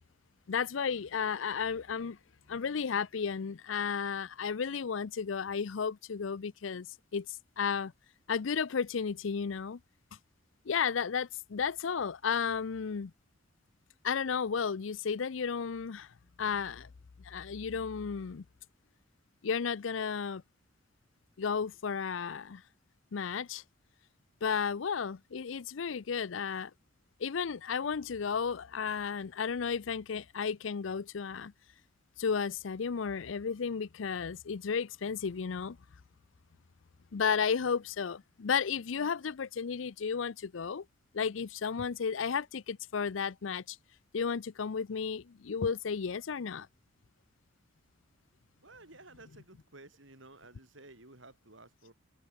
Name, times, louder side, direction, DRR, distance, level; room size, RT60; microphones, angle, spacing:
voice 1, 0.5-2.2 2.5-6.9 7.1-7.9 8.3-9.8 10.7-13.1 14.0-16.1 16.4-16.9 17.2-18.4 19.4-20.4 21.4-22.6 23.1-23.6 24.4-26.7 27.2-31.5 32.2-35.8 37.1-40.8 41.1-43.8 44.1-46.7, left 6 dB, 70° left, 0.5 m, -33 dB
voice 2, 48.6-51.9, right 2 dB, 70° right, 7.2 m, -54 dB
head